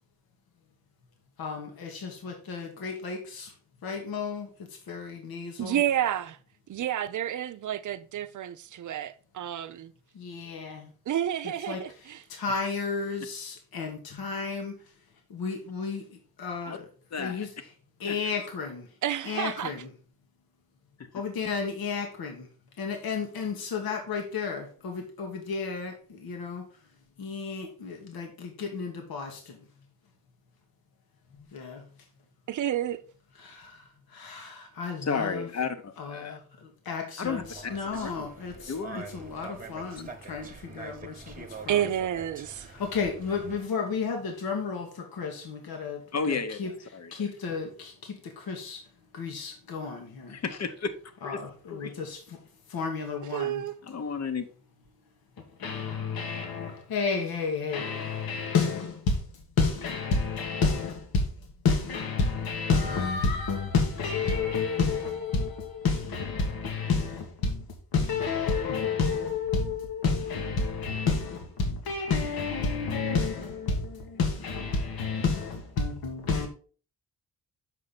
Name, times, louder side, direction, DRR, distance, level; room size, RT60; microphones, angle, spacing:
voice 1, 1.4-3.5 3.8-5.8 10.1-10.9 11.7-11.8 12.3-14.8 15.3-16.9 17.2-17.5 18.0-18.9 19.2-19.9 21.1-22.5 22.8-26.6 27.2-29.7 31.4-31.8 33.4-35.5 36.0-41.8 42.6-46.7 47.1-48.8 49.1-50.4 51.2-52.4 52.7-53.6 55.6-67.6 67.9-76.5, left 4 dB, 85° left, 1.4 m, -31 dB
voice 2, 5.6-6.4 6.7-9.9 11.1-12.2 19.0-19.7 32.5-33.0 41.7-42.7 53.3-53.7, right 11 dB, 55° right, 0.6 m, -30 dB
voice 3, 17.1-17.5 18.1-18.2 21.0-21.1 35.0-36.4 37.2-38.3 38.7-39.1 46.1-47.1 50.3-50.9 51.2-51.4 51.7-51.9 53.9-54.5, left 5 dB, 45° left, 0.9 m, -33 dB
sound 1, 37.2-43.7, right 4 dB, 25° right, 1.1 m, -45 dB
6.7 x 5.1 x 4.1 m
cardioid pair, 115°, 35 cm